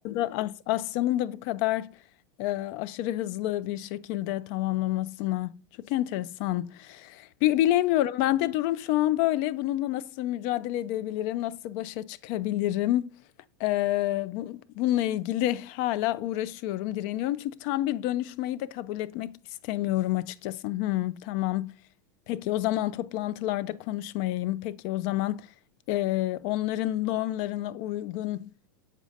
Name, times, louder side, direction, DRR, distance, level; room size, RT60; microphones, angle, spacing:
voice 1, 0.0-1.9 2.4-13.1 13.6-19.4 19.6-21.7 22.3-25.5 25.9-28.5, left 14 dB, 55° left, 0.4 m, -28 dB
7.4 x 5.0 x 2.6 m
hypercardioid pair, 105°, 11 cm